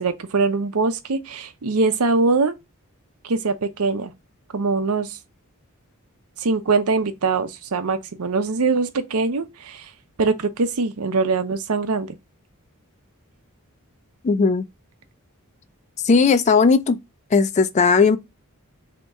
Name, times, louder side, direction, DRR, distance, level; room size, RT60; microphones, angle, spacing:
voice 1, 0.0-2.5 3.3-4.1 4.5-5.2 6.4-9.9 10.2-12.1, right 4 dB, 80° right, 0.7 m, -22 dB
voice 2, 14.2-14.6 16.0-17.0 17.3-18.2, left 4 dB, 30° left, 0.3 m, -17 dB
3.5 x 2.9 x 4.2 m
head